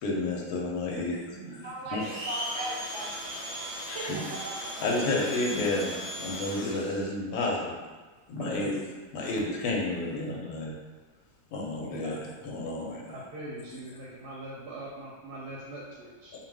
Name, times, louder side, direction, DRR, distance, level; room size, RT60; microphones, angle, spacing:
voice 1, 0.0-1.2 1.5-2.0 3.9-4.1 4.8-7.8 8.3-8.9 9.1-10.8 11.5-13.1, left 2 dB, 75° left, -1 dB, 1.0 m, -31 dB
voice 2, 0.9-1.5 8.4-8.7 11.9-12.1 13.1-16.3, right 1 dB, 90° right, -5 dB, 1.2 m, -41 dB
voice 3, 1.6-3.3 3.6-4.7 8.1-8.2 9.2-9.3, right 2 dB, 60° right, -4 dB, 0.8 m, -39 dB
Domestic sounds home sounds, 2.0-7.1, equal, 20° left, 1.2 m, -37 dB
2.6 x 2.2 x 3.3 m, 1.3 s
omnidirectional pair, 1.7 m